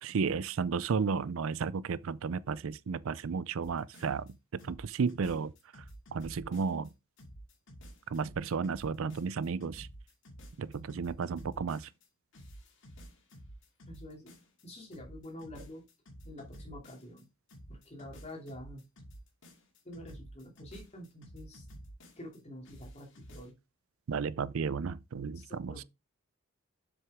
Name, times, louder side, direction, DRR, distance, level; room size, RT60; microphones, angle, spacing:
voice 1, 0.0-5.8 6.1-6.9 8.1-9.9 10.6-11.9 24.1-25.8, right 5 dB, 65° right, 0.4 m, -33 dB
sound 1, 3.6-4.3 4.6-6.9 7.2-12.1 12.3-14.6 14.9-17.2 17.5-22.4 22.7-23.5, equal, 60° left, 2.3 m, -51 dB
voice 2, 13.9-14.3 14.6-15.8 16.2-17.3 17.7-18.8 19.8-21.6 22.2-23.5 25.3-25.8, left 1 dB, 30° left, 2.7 m, -47 dB
7.6 x 6.3 x 3.6 m
head